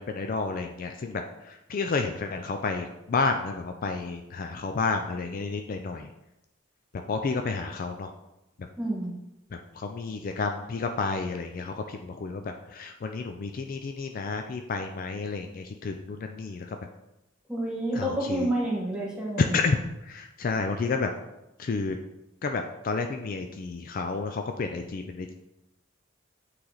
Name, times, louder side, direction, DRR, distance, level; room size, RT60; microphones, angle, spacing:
voice 1, 0.0-6.1 6.9-8.1 9.7-16.8 17.9-18.5 19.5-19.8 20.0-21.1 21.6-22.0 22.4-25.3, left 4 dB, 45° left, 5 dB, 0.4 m, -31 dB
voice 2, 8.8-9.1 17.5-19.5, right 1 dB, 5° right, -5 dB, 1.5 m, -29 dB
8.6 x 3.3 x 3.9 m, 0.92 s
head